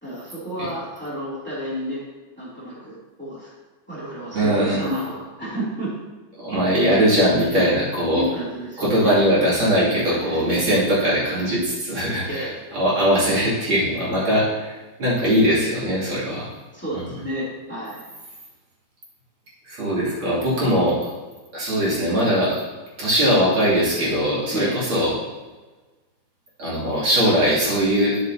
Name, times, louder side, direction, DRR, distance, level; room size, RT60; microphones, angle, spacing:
voice 1, 0.0-2.0 2.4-3.5 3.9-5.9 8.1-9.2 10.1-10.5 12.2-12.6 16.7-18.0 24.5-24.8, equal, 5° left, -8 dB, 2.7 m, -31 dB
voice 2, 4.3-4.8 6.4-8.2 8.8-16.5 16.9-17.0 19.6-21.1 21.5-22.7 23.0-25.1 26.6-28.2, equal, 80° right, -8 dB, 3.5 m, -20 dB
11.0 x 7.0 x 2.8 m, 1.2 s
omnidirectional pair, 2.2 m